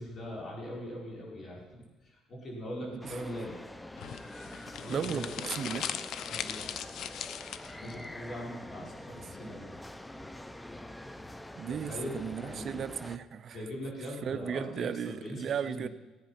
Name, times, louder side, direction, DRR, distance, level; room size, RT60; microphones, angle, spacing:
voice 1, 0.0-3.6 4.8-5.5 6.2-6.7 7.7-9.6 11.7-12.8 13.5-15.9, equal, 40° left, 4.9 m, -41 dB
sound 1, 3.0-13.2, left 1 dB, 10° left, 0.6 m, -45 dB
sound 2, 4.0-7.9, left 9 dB, 65° left, 0.7 m, -39 dB
voice 2, 4.9-5.9 8.8-8.9 9.2-9.5 11.6-13.6 14.2-15.9, right 8 dB, 45° right, 0.6 m, -36 dB
16.0 x 9.0 x 5.8 m
cardioid pair, 125°, 0 cm